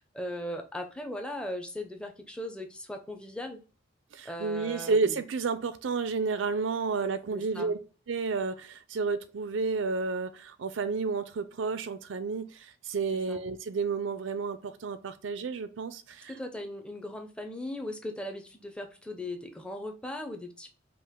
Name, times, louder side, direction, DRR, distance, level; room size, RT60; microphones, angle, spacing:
voice 1, 0.1-3.6 4.2-5.2 7.3-7.8 13.3-13.4 16.3-20.7, left 1 dB, 5° left, 0.7 m, -38 dB
voice 2, 4.1-7.8 8.1-16.3, right 4 dB, 70° right, 0.4 m, -31 dB
5.3 x 2.5 x 3.6 m
head